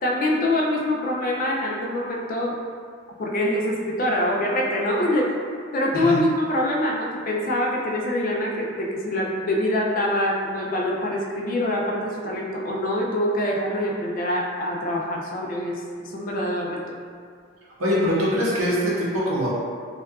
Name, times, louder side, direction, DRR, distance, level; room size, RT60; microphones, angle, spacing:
voice 1, 0.0-2.6 3.2-5.3 5.7-17.0, left 1 dB, 40° left, -2 dB, 0.3 m, -25 dB
voice 2, 17.8-19.5, equal, 70° right, -7 dB, 0.7 m, -23 dB
2.7 x 2.3 x 2.3 m, 2.1 s
head